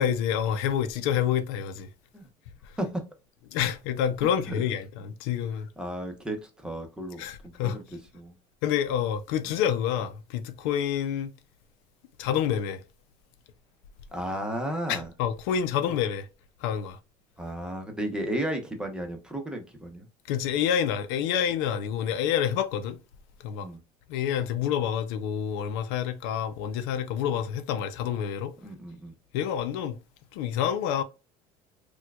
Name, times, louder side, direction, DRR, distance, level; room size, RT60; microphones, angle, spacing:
voice 1, 0.0-1.9 3.5-5.7 7.2-7.8 8.6-11.3 12.2-12.8 14.9-16.3 16.6-17.0 20.3-23.0 23.4-23.7 24.1-28.5 29.3-30.0 30.3-31.0, left 9 dB, 85° left, 0.5 m, -28 dB
voice 2, 5.8-7.2 7.6-8.3 14.1-15.1 17.4-20.1 23.6-23.8 28.6-29.1, right 1 dB, 5° right, 0.8 m, -33 dB
4.4 x 2.3 x 2.3 m
cardioid pair, 125°, 13 cm